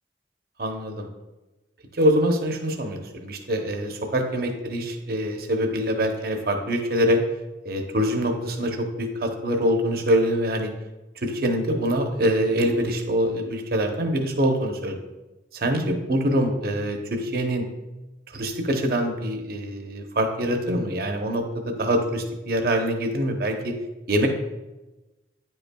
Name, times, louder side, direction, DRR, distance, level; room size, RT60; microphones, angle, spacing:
voice 1, 0.6-1.1 1.9-7.2 7.6-10.7 11.2-15.0 15.5-17.6 18.3-23.8 24.1-24.3, equal, 55° right, 4 dB, 0.8 m, -24 dB
9.3 x 5.4 x 2.3 m, 1.1 s
head